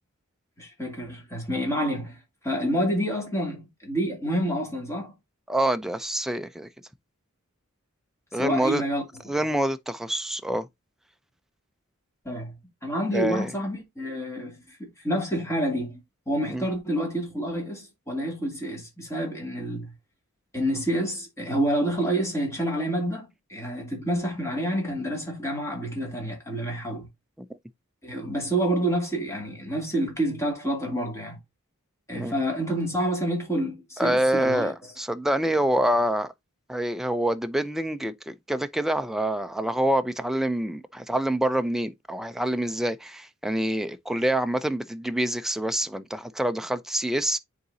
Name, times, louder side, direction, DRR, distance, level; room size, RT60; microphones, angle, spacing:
voice 1, 0.6-5.1 8.3-9.0 12.2-16.0 16.3-19.9 20.5-27.1 28.0-31.4 32.1-34.9, right 1 dB, 15° left, 2.4 m, -28 dB
voice 2, 5.5-6.7 8.3-8.8 9.3-10.7 13.1-13.5 16.5-16.6 32.1-32.3 34.0-36.3 36.7-47.4, right 1 dB, ahead, 0.3 m, -26 dB
9.5 x 4.0 x 2.6 m
head